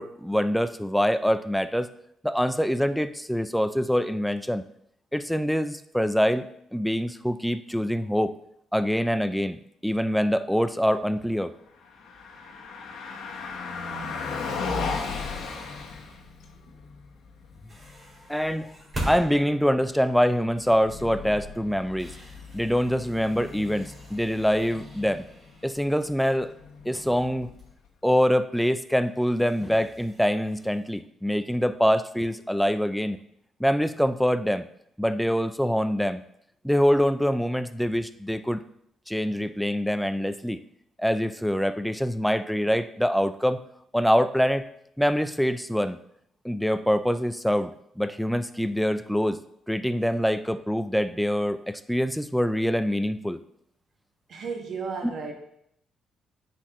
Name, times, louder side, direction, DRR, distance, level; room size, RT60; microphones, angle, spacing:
voice 1, 0.0-1.9 2.2-4.6 5.1-6.5 6.7-8.4 8.7-11.5 18.3-18.7 19.1-22.2 22.5-25.2 25.6-26.5 26.9-27.5 28.0-33.2 33.6-34.7 35.0-36.2 36.6-38.6 39.1-40.6 41.0-43.6 43.9-44.6 45.0-46.0 46.4-49.4 49.7-53.4, equal, ahead, 12 dB, 0.4 m, -25 dB
Car passing by, 11.7-27.9, left 4 dB, 80° left, 1.2 m, -38 dB
sound 1, 14.5-16.5 17.5-20.9 21.3-21.4 21.8-27.3 27.6-27.7 28.6-28.7 29.1-31.0, right 1 dB, 25° right, 2.6 m, -43 dB
voice 2, 54.3-55.3, right 5 dB, 60° right, 1 dB, 1.5 m, -33 dB
9.6 x 4.3 x 3.1 m, 0.74 s
cardioid pair, 90°, 0 cm